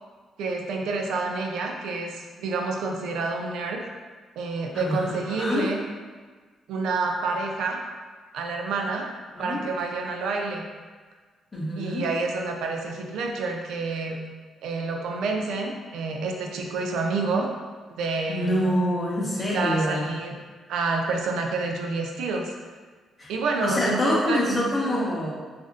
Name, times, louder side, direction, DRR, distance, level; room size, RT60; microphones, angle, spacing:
voice 1, 0.4-3.8 4.4-5.8 6.7-7.8 8.3-9.1 9.4-10.6 11.8-14.2 14.6-17.5 18.0-18.6 19.5-20.4 20.7-22.5 23.3-25.1, right 3 dB, 85° right, 2 dB, 0.3 m, -28 dB
voice 2, 4.7-5.7 9.3-9.6 11.5-12.1 18.3-20.1 23.2-23.3 23.6-25.3, left 1 dB, 20° left, -5 dB, 0.8 m, -26 dB
2.5 x 2.0 x 3.7 m, 1.5 s
cardioid pair, 130°, 0 cm